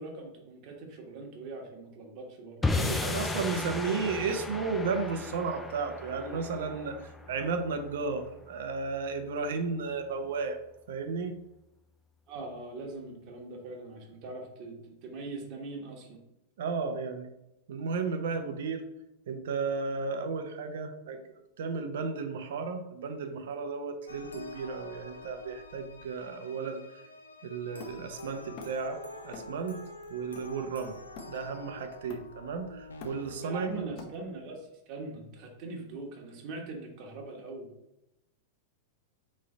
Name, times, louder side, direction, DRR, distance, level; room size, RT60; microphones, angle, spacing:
voice 1, 0.0-2.6 12.3-16.2 33.4-37.7, right 2 dB, 50° right, 1 dB, 1.2 m, -42 dB
sound 1, 2.6-9.0, left 3 dB, 10° left, 0.5 m, -35 dB
voice 2, 2.8-10.6 10.9-11.4 16.6-17.3 17.7-18.8 19.3-21.2 21.6-26.8 27.4-29.0 29.2-29.8 30.1-30.9 31.3-33.9, right 4 dB, 70° right, 7 dB, 0.6 m, -33 dB
sound 2, 24.1-33.8, left 2 dB, 90° left, 0.5 m, -47 dB
Hammer, 27.8-28.9 29.3-29.7 30.0-31.6 32.1-32.5 32.8-34.5, left 4 dB, 50° left, 0.8 m, -48 dB
3.8 x 3.2 x 3.8 m, 0.88 s
hypercardioid pair, 100°, 0 cm